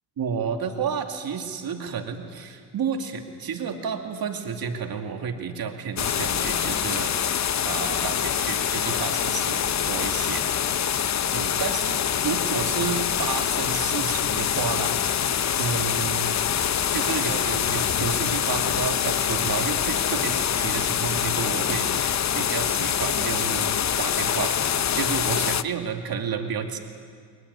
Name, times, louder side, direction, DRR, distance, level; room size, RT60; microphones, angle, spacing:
voice 1, 0.2-10.9 11.3-16.4 16.9-23.7 24.0-24.5 24.9-26.8, right 6 dB, 60° right, 4 dB, 2.5 m, -31 dB
sound 1, 6.0-25.6, left 9 dB, 45° left, 0.8 m, -25 dB
22.5 x 22.0 x 9.6 m, 2.1 s
cardioid pair, 90°, 40 cm